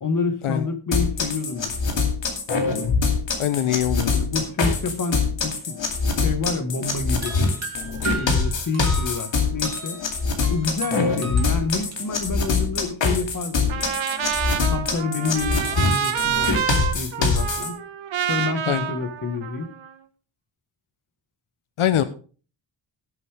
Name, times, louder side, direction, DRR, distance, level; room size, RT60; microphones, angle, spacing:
voice 1, 0.0-2.0 4.1-5.8 6.2-7.4 8.2-10.0 10.5-13.9 14.7-17.7 18.3-19.7, left 4 dB, 40° left, 7 dB, 1.6 m, -28 dB
sound 1, 0.9-17.7, left 4 dB, 65° left, 2.5 m, -24 dB
voice 2, 3.4-4.1 11.0-11.1 18.7-18.8 21.8-22.0, left 11 dB, 85° left, 12 dB, 0.9 m, -22 dB
sound 2, 7.2-12.0, right 4 dB, 30° right, 2.1 m, -36 dB
Trumpet, 13.7-19.9, right 9 dB, 75° right, 1.2 m, -28 dB
17.5 x 7.1 x 3.5 m, 0.38 s
wide cardioid pair, 160°, 48 cm